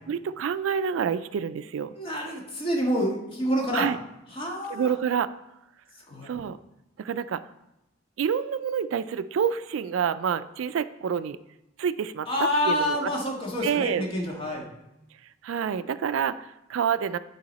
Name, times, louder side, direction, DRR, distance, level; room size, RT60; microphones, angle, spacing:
voice 1, 0.1-1.9 3.7-4.0 4.7-5.3 6.2-6.6 7.0-7.4 8.2-11.4 11.8-13.1 13.6-14.1 15.4-17.2, right 7 dB, 85° right, 14 dB, 0.3 m, -28 dB
voice 2, 2.0-3.9 4.3-4.9 6.1-6.3 12.3-14.7, equal, 30° left, -1 dB, 1.6 m, -27 dB
10.5 x 4.7 x 4.1 m, 0.89 s
head